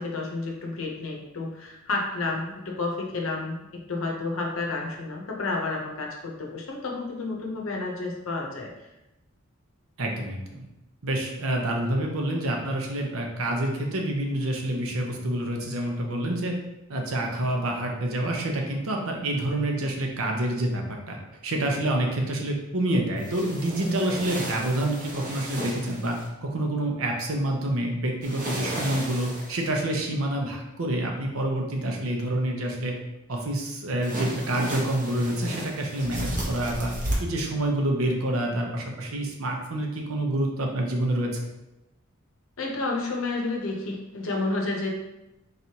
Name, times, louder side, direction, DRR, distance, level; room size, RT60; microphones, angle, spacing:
voice 1, 0.0-8.7 23.8-24.0 42.6-44.9, left 3 dB, 70° left, 0 dB, 0.8 m, -30 dB
voice 2, 10.0-10.7 11.0-16.6 16.9-21.2 21.4-32.9 33.3-36.9 37.2-41.4, right 1 dB, 75° right, 1 dB, 0.7 m, -27 dB
sound 1, 23.2-26.3 28.2-29.7 34.0-37.1, right 1 dB, 40° right, 0.9 m, -34 dB
4.1 x 3.2 x 2.8 m, 0.96 s
head